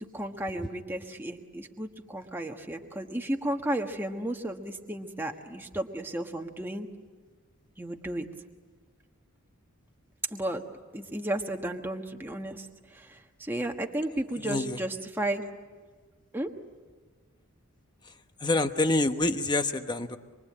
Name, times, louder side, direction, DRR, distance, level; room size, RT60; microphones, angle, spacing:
voice 1, 0.0-6.9 7.8-8.2 10.3-12.7 12.9-15.4 16.3-16.5, right 1 dB, 10° right, 3 dB, 1.4 m, -33 dB
voice 2, 14.4-14.8 18.0-18.1 18.4-20.2, left 2 dB, 20° left, 8 dB, 1.0 m, -27 dB
25.5 x 23.5 x 8.7 m, 1.4 s
head